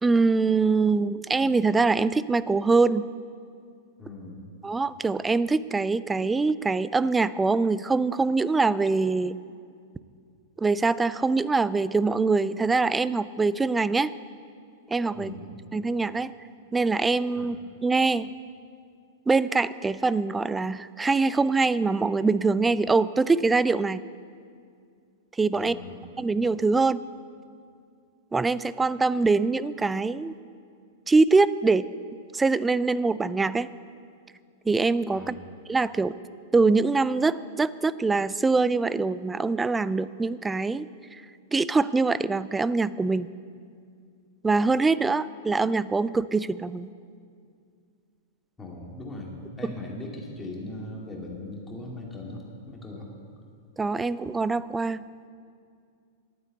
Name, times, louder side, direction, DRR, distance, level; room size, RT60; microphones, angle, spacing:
voice 1, 0.0-3.1 4.6-9.4 10.6-14.1 14.9-15.3 15.7-16.3 16.7-17.6 17.8-18.3 19.3-24.0 25.4-25.8 26.2-27.0 28.3-30.3 31.1-31.9 32.3-33.7 34.7-35.3 35.7-36.2 36.5-41.2 41.5-43.3 44.4-46.9 53.8-55.0, right 3 dB, 10° right, 17 dB, 0.4 m, -23 dB
voice 2, 4.0-4.5 15.1-15.5 17.4-17.5 25.5-26.0 35.1-35.5 48.6-49.3 49.6-53.1, left 2 dB, 15° left, -2 dB, 2.6 m, -39 dB
11.5 x 9.4 x 8.0 m, 2.3 s
figure-of-eight pair, 95°, 0 cm